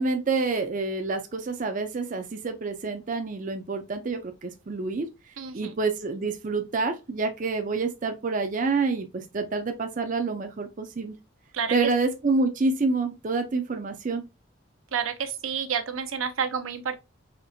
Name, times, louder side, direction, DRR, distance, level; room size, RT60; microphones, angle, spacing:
voice 1, 0.0-5.1 5.5-11.1 11.7-14.3, right 3 dB, 40° right, 0.5 m, -27 dB
voice 2, 5.4-5.7 11.5-11.8 14.9-17.0, right 7 dB, 80° right, 0.7 m, -30 dB
4.3 x 3.2 x 2.6 m
head